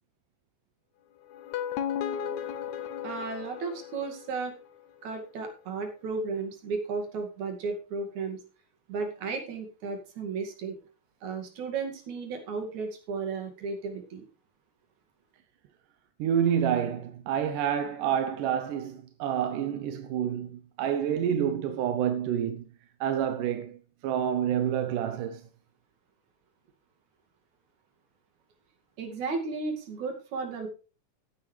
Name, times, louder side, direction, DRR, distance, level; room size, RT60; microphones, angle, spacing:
sound 1, 1.3-4.5, left 9 dB, 70° left, 2.1 m, -35 dB
voice 1, 3.0-4.5 5.0-8.4 8.9-10.8 11.2-14.2 29.0-30.7, right 4 dB, 65° right, 3.6 m, -34 dB
voice 2, 16.2-22.6 23.0-23.8 24.0-25.4, right 9 dB, 90° right, 2.5 m, -28 dB
16.0 x 9.0 x 3.3 m
omnidirectional pair, 3.6 m